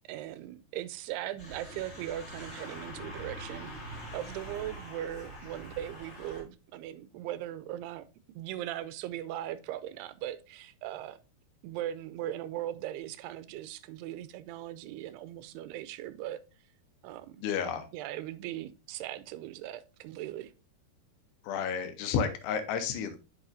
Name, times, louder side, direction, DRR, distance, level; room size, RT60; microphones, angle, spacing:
voice 1, 0.1-8.1 8.4-11.2 11.6-16.4 17.0-17.4 17.9-20.5, right 12 dB, 90° right, 2.6 m, -39 dB
sound 1, 1.4-6.4, right 1 dB, 65° left, 0.6 m, -44 dB
voice 2, 17.4-17.8 21.4-23.2, left 7 dB, 85° left, 2.9 m, -31 dB
8.8 x 6.0 x 2.6 m
omnidirectional pair, 4.6 m